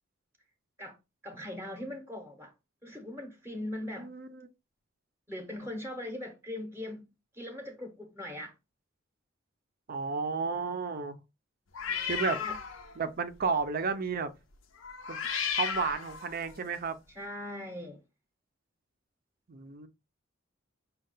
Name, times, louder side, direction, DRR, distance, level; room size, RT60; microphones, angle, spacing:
voice 1, 1.2-2.5 2.8-4.1 5.3-7.1 7.3-8.5 11.9-12.6 17.1-18.0, left 1 dB, 15° right, 0.8 m, -40 dB
voice 2, 4.0-4.5 9.9-11.2 12.1-12.4 13.0-14.3 15.1-17.0 19.5-19.9, right 5 dB, 50° right, 0.5 m, -32 dB
sound 1, 11.7-13.0 13.3-13.6 14.8-16.6, left 7 dB, 80° left, 0.6 m, -34 dB
5.4 x 2.3 x 3.8 m
head